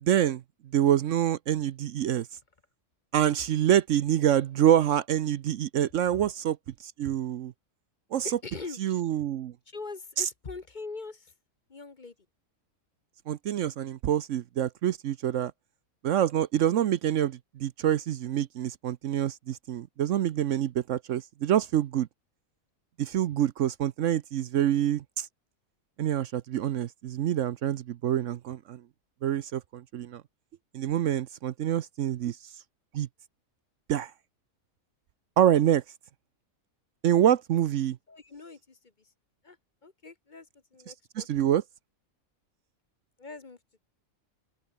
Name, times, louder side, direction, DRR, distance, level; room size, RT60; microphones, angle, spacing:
voice 1, 0.0-0.4 0.7-2.3 3.1-6.6 6.8-7.5 8.1-8.4 8.7-9.5 10.2-10.3 13.3-15.5 16.0-22.1 23.0-25.3 26.0-28.8 29.2-30.2 30.7-32.4 32.9-33.1 33.9-34.1 35.4-35.8 37.0-38.0 41.2-41.6, right 11 dB, 65° right, 0.9 m, -26 dB
voice 2, 8.2-8.8 9.7-11.3 11.7-12.1 38.1-38.8 39.4-39.6 39.8-40.5 40.7-41.3 43.2-43.6, left 4 dB, 35° left, 1.2 m, -42 dB
open air
omnidirectional pair, 1.5 m